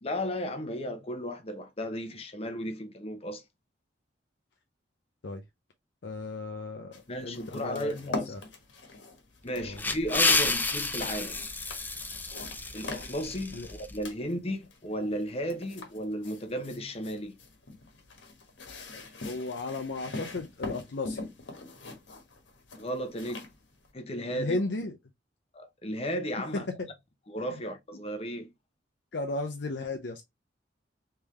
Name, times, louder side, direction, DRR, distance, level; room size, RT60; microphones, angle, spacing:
voice 1, 0.0-3.4 7.1-8.3 9.4-11.4 12.7-17.4 22.8-23.5 23.9-24.6 25.5-26.7 27.3-28.5, equal, 35° left, 0.8 m, -34 dB
voice 2, 6.0-6.9 7.2-8.0 8.3-8.4 9.6-9.8 13.5-13.7 19.2-21.2 24.3-24.9 29.1-30.2, left 3 dB, 65° left, 0.6 m, -35 dB
sound 1, 6.9-23.9, left 2 dB, 85° left, 1.2 m, -42 dB
sound 2, 9.5-14.0, left 3 dB, 10° left, 0.4 m, -30 dB
3.5 x 3.4 x 3.0 m
head